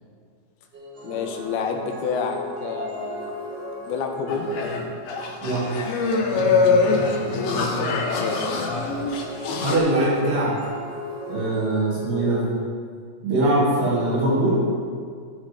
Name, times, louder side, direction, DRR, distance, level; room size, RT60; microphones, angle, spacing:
sound 1, 0.7-5.8 8.3-12.4, left 1 dB, 20° right, 3.6 m, -36 dB
voice 1, 1.0-3.3 3.7-4.5 7.0-8.5, left 6 dB, 80° left, 3 dB, 2.9 m, -30 dB
sound 2, 4.3-9.8, left 4 dB, 65° left, 1.7 m, -23 dB
voice 2, 9.6-10.5 11.3-12.4 13.2-14.6, right 2 dB, 85° right, -7 dB, 4.7 m, -21 dB
18.5 x 8.4 x 3.6 m, 2.1 s
omnidirectional pair, 4.5 m